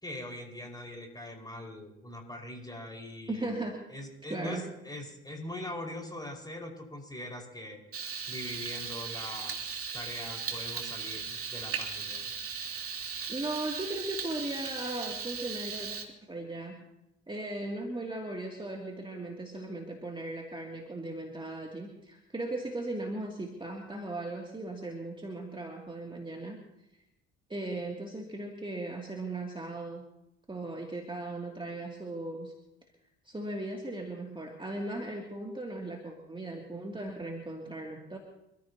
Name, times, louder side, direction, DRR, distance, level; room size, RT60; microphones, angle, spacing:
voice 1, 0.0-3.6 3.9-7.8 8.3-12.3, left 1 dB, 10° left, 2 dB, 5.1 m, -42 dB
voice 2, 3.3-3.8 4.3-4.7 13.3-16.9 17.3-26.7 27.5-30.0 30.5-32.5 33.2-38.2, right 2 dB, 15° right, 0 dB, 2.6 m, -37 dB
Frying (food), 7.9-16.0, right 6 dB, 40° right, 2.8 m, -37 dB
28.0 x 14.5 x 2.9 m, 0.87 s
hypercardioid pair, 55°, 34 cm